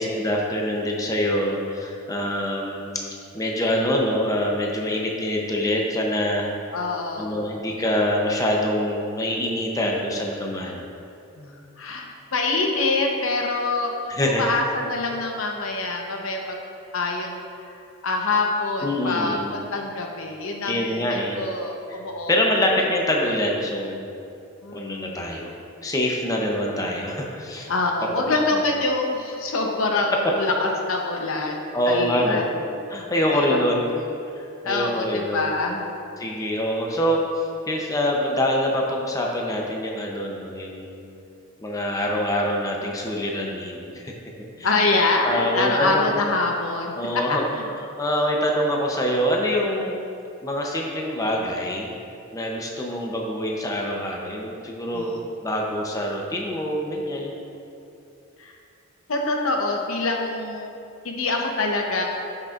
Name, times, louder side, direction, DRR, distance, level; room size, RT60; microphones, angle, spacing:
voice 1, 0.0-2.9 3.3-6.5 7.2-10.9 14.1-14.5 18.8-19.5 20.7-21.5 21.9-22.0 22.3-24.0 24.7-25.5 25.8-27.7 28.3-28.4 31.7-32.4 32.9-33.8 34.4-35.5 36.2-41.1 41.6-44.1 44.4-44.9 45.2-46.0 46.9-47.5 48.0-50.0 50.4-51.9 52.3-55.1 55.4-57.5, left 1 dB, 15° left, -1 dB, 0.7 m, -25 dB
voice 2, 6.7-7.5 11.4-13.9 14.4-16.6 16.9-17.4 18.0-22.6 24.6-25.2 27.7-32.4 32.7-33.0 33.3-33.6 33.9-34.1 34.6-35.8 44.6-47.2 47.5-47.6 54.9-55.2 58.4-58.5 59.1-60.7 61.0-62.0, left 3 dB, 75° left, 1 dB, 0.8 m, -25 dB
10.0 x 6.4 x 2.5 m, 2.6 s
head